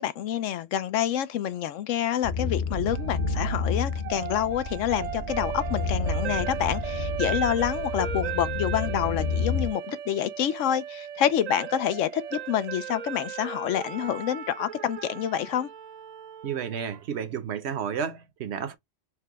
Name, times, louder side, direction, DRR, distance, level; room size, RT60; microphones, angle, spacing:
voice 1, 0.0-15.7, left 10 dB, 80° left, 1.0 m, -27 dB
sound 1, 2.2-9.7, left 3 dB, 40° left, 0.8 m, -30 dB
sound 2, 2.9-17.0, right 9 dB, 90° right, 0.3 m, -37 dB
voice 2, 16.4-18.7, right 7 dB, 60° right, 1.0 m, -31 dB
4.7 x 2.2 x 3.5 m
omnidirectional pair, 1.3 m